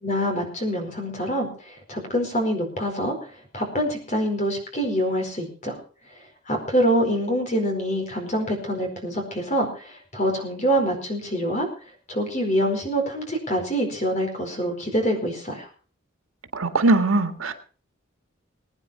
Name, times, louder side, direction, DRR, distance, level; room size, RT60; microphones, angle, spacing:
voice 1, 0.0-1.5 1.9-3.1 3.5-5.7 6.5-9.7 10.1-11.7 12.1-15.7, equal, 35° left, 3 dB, 4.7 m, -25 dB
voice 2, 16.5-17.5, right 2 dB, 90° right, 7 dB, 1.8 m, -20 dB
21.0 x 9.6 x 4.3 m, 0.40 s
head